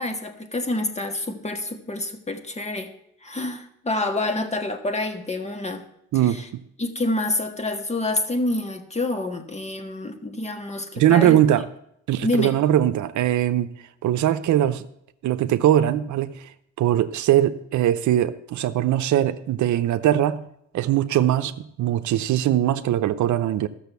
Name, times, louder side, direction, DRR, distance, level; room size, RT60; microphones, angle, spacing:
voice 1, 0.0-2.9 3.2-5.8 6.2-6.5 6.8-11.4 12.2-12.5, left 2 dB, 20° left, 6 dB, 1.6 m, -27 dB
voice 2, 10.9-11.6 12.1-13.7 14.0-14.9 15.2-16.4 16.8-20.5 20.7-23.7, right 12 dB, 70° right, 11 dB, 0.7 m, -21 dB
13.0 x 6.9 x 6.9 m, 0.75 s
cardioid pair, 90°, 30 cm